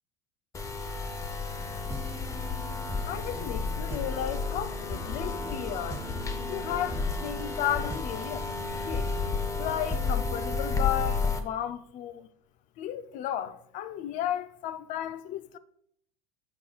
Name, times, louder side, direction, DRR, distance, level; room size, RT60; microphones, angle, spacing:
sound 1, 0.5-11.4, left 4 dB, 20° left, 0.8 m, -32 dB
sound 2, 1.6-10.8, right 2 dB, 15° right, 0.6 m, -43 dB
voice 1, 3.1-6.0 6.5-9.1 9.6-12.3 12.8-15.6, left 11 dB, 50° left, 0.5 m, -34 dB
9.7 x 6.2 x 2.3 m
supercardioid pair, 115°, 17 cm